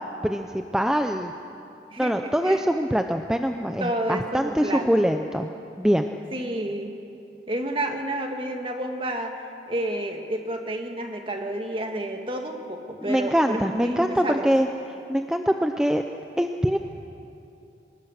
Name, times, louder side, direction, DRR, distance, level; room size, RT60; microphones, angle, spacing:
voice 1, 0.2-1.3 2.0-5.5 5.8-6.1 13.0-14.7 15.1-16.0 16.4-16.8, equal, 5° right, 5 dB, 0.6 m, -23 dB
voice 2, 1.9-2.6 3.8-4.9 6.3-6.9 7.5-14.5, right 1 dB, 30° right, 3 dB, 1.9 m, -30 dB
24.5 x 20.5 x 6.6 m, 2.7 s
head